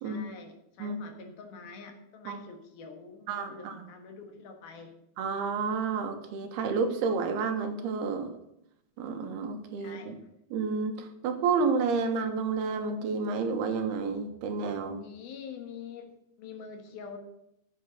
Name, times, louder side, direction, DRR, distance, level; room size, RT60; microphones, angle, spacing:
voice 1, 0.0-4.9 9.8-10.2 15.0-16.1 16.4-17.2, left 5 dB, 70° left, 4 dB, 3.3 m, -45 dB
voice 2, 3.3-3.8 5.2-8.3 9.0-10.1 10.5-15.1, right 5 dB, 75° right, 6 dB, 3.2 m, -30 dB
12.5 x 8.5 x 6.4 m, 0.79 s
omnidirectional pair, 4.6 m